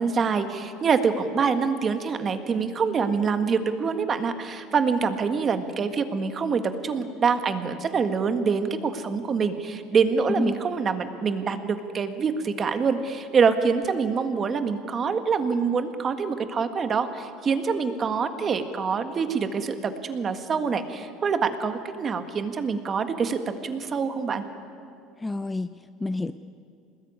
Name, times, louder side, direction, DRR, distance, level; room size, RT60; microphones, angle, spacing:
voice 1, 0.0-24.4, right 5 dB, 30° right, 9 dB, 1.7 m, -25 dB
voice 2, 25.2-26.3, left 3 dB, 10° left, 12 dB, 0.5 m, -29 dB
25.0 x 20.5 x 9.7 m, 2.5 s
cardioid pair, 135°, 0 cm